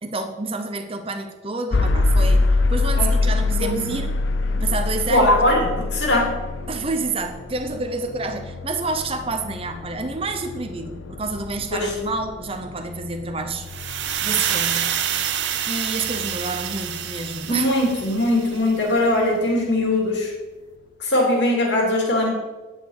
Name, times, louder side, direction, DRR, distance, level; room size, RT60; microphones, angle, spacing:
voice 1, 0.0-4.2 4.5-5.3 6.7-13.7 14.2-15.3 15.7-17.7, right 3 dB, 30° right, 6 dB, 0.8 m, -28 dB
sound 1, 1.7-17.6, left 3 dB, 85° left, 0.6 m, -25 dB
voice 2, 3.6-4.0 5.1-6.3 11.7-11.9 17.5-20.3 21.0-22.3, left 1 dB, 65° left, 0 dB, 2.8 m, -20 dB
sound 2, 13.7-18.7, right 9 dB, 65° right, 0.8 m, -27 dB
9.7 x 8.5 x 4.8 m, 1.2 s
head